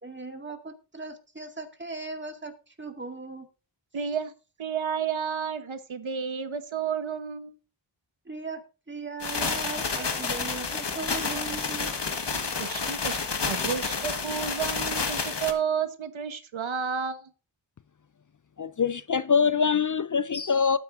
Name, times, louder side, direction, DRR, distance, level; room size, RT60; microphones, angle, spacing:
voice 1, 0.0-3.5 8.3-11.9, right 3 dB, 25° right, 2.0 m, -38 dB
voice 2, 3.9-4.3 4.6-7.5 9.9-10.0 12.6-17.3, right 7 dB, 80° right, 1.1 m, -31 dB
sound 1, 9.2-15.5, left 5 dB, 60° left, 1.7 m, -30 dB
voice 3, 18.6-20.8, left 6 dB, 40° left, 0.5 m, -24 dB
19.5 x 9.1 x 2.6 m
wide cardioid pair, 75°, 47 cm